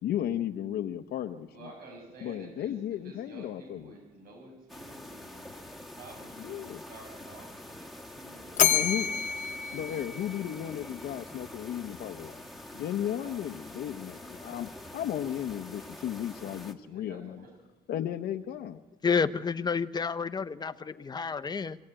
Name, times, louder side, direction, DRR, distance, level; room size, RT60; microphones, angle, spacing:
voice 1, 0.0-1.7 2.2-4.0 6.4-6.8 8.7-9.1 9.7-12.4 12.7-17.5 17.9-18.8 20.9-21.1, left 11 dB, 65° left, 6 dB, 0.9 m, -35 dB
voice 2, 1.5-9.2 9.5-9.6 13.2-13.4 16.8-17.5, right 2 dB, 65° right, 2 dB, 6.9 m, -51 dB
sound 1, 4.7-16.7, left 1 dB, ahead, 1.8 m, -46 dB
Bell, 8.6-10.9, left 9 dB, 45° left, 1.2 m, -28 dB
voice 3, 19.0-21.8, left 5 dB, 25° left, 12 dB, 0.8 m, -30 dB
25.0 x 15.5 x 8.9 m, 1.2 s
cardioid pair, 110°, 17 cm